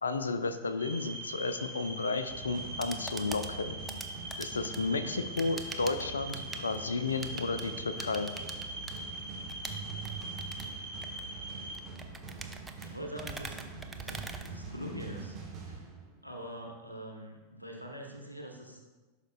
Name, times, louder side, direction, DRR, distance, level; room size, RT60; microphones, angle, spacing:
voice 1, 0.0-3.8 4.4-8.3, left 3 dB, 75° left, 11 dB, 0.4 m, -33 dB
sound 1, 0.8-11.8, right 1 dB, 80° right, 1.6 m, -42 dB
sound 2, 2.3-16.5, right 4 dB, 30° right, 1.4 m, -45 dB
sound 3, 2.5-15.2, right 3 dB, 10° right, 0.5 m, -45 dB
voice 2, 12.8-15.8 16.2-18.8, equal, 90° left, 1 dB, 0.8 m, -44 dB
11.5 x 5.0 x 2.2 m, 1.3 s
figure-of-eight pair, 90°, 0 cm